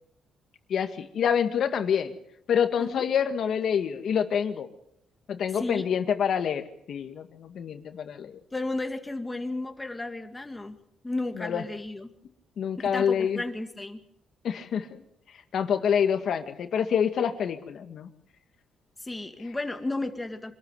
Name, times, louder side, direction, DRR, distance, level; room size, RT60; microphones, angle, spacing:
voice 1, 0.7-2.1 2.5-4.7 5.3-8.4 11.4-11.6 12.6-13.4 14.4-14.9 15.5-18.1, left 8 dB, 60° left, 7 dB, 1.9 m, -27 dB
voice 2, 5.5-5.9 8.5-10.8 11.0-12.1 12.8-14.0 19.0-20.5, left 2 dB, 15° left, 6 dB, 2.2 m, -33 dB
26.0 x 13.5 x 8.3 m, 0.77 s
cardioid pair, 125°, 0 cm